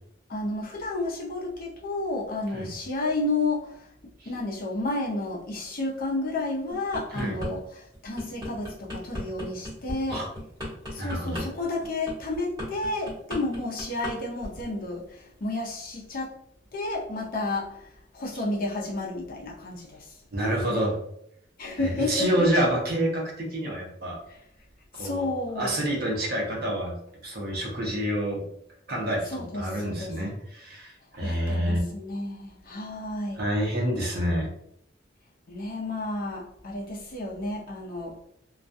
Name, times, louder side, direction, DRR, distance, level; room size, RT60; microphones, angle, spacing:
voice 1, 0.3-3.9 4.3-10.2 10.9-16.4 16.7-20.2 21.6-22.5 24.3-24.4 24.9-25.7 29.3-30.1 31.2-33.4 35.5-38.3, left 2 dB, 50° left, -2 dB, 0.6 m, -31 dB
sound 1, 6.7-7.5 7.9-14.1 14.4-14.7, equal, 20° right, 1.1 m, -35 dB
voice 2, 11.0-11.4 20.3-21.0 22.1-24.2 24.9-25.3 25.6-27.0 27.2-28.4 28.9-31.8 33.4-34.5, right 1 dB, 55° right, -2 dB, 0.7 m, -27 dB
2.3 x 2.2 x 2.5 m, 0.71 s
head